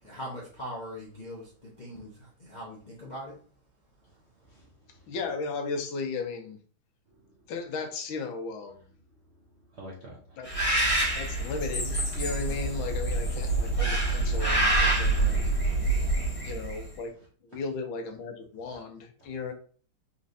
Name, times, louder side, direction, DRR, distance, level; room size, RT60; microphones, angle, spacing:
voice 1, 0.0-3.3, equal, 40° left, 0.6 m, -41 dB
voice 2, 4.0-5.1 7.1-7.5 9.4-10.6 17.1-17.3 17.5-17.6 18.7-18.8 19.3-19.4, equal, 70° right, 0.6 m, -52 dB
voice 3, 5.1-6.6 7.5-8.8 10.4-10.5 11.1-15.4 16.4-17.1 17.5-19.5, left 4 dB, 75° left, 1.4 m, -35 dB
Bird, 10.4-16.9, right 2 dB, 20° left, 1.2 m, -26 dB
4.3 x 3.1 x 2.6 m
omnidirectional pair, 2.4 m